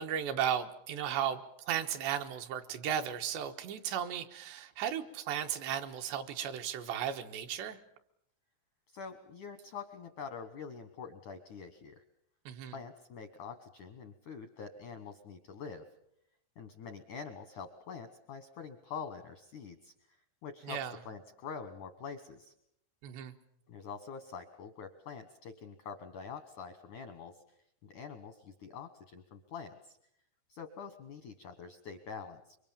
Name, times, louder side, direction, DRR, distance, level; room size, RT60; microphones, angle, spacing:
voice 1, 0.0-7.8 12.5-12.8 20.6-21.0 23.0-23.3, right 9 dB, 75° right, 6 dB, 3.2 m, -35 dB
voice 2, 8.9-12.0 12.7-15.9 16.6-19.9 20.4-22.5 23.7-27.4 27.8-30.0 30.5-32.6, left 6 dB, 75° left, 8 dB, 1.8 m, -45 dB
26.0 x 24.0 x 7.3 m, 0.76 s
omnidirectional pair, 5.4 m